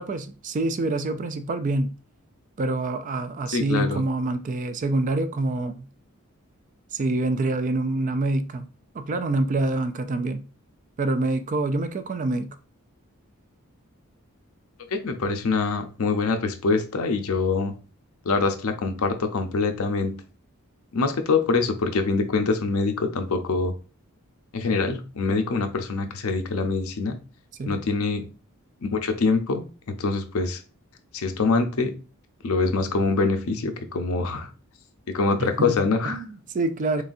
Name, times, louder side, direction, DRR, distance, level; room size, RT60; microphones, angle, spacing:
voice 1, 0.0-1.9 2.6-5.9 6.9-8.7 8.9-10.4 11.0-12.6 27.6-27.8 35.4-35.8 36.0-37.0, right 2 dB, 35° right, 0.3 m, -26 dB
voice 2, 3.5-4.0 14.9-17.7 18.2-20.1 20.9-23.7 24.5-27.2 27.7-28.2 28.8-30.6 31.1-31.9 32.4-34.5 35.1-36.2, left 4 dB, 70° left, 0.6 m, -24 dB
3.9 x 3.2 x 2.6 m
head